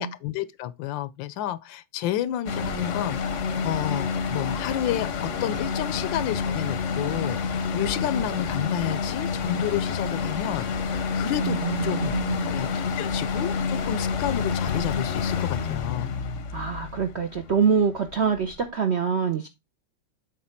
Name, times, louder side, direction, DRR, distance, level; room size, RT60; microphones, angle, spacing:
voice 1, 0.0-11.6 11.8-12.2 12.4-16.1, left 12 dB, 80° left, 1.2 m, -31 dB
sound 1, 2.5-18.6, left 5 dB, 55° left, 0.8 m, -28 dB
voice 2, 11.4-12.5 16.5-19.5, right 6 dB, 75° right, 0.6 m, -25 dB
7.5 x 3.2 x 5.8 m
omnidirectional pair, 2.1 m